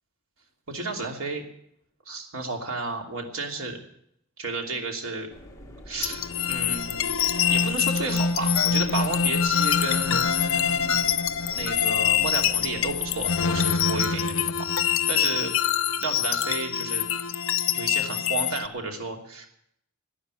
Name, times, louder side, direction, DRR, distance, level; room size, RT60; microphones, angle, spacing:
voice 1, 0.7-1.4 2.1-3.8 4.4-5.3 5.9-6.2 6.5-11.1 11.5-14.7 15.1-15.5 16.0-17.1 17.7-19.5, right 2 dB, 75° right, 2 dB, 3.0 m, -32 dB
sound 1, 5.3-13.6, left 1 dB, 15° left, 1.8 m, -45 dB
sound 2, 6.0-18.7, left 7 dB, 65° left, 0.8 m, -25 dB
13.0 x 9.9 x 9.5 m, 0.73 s
head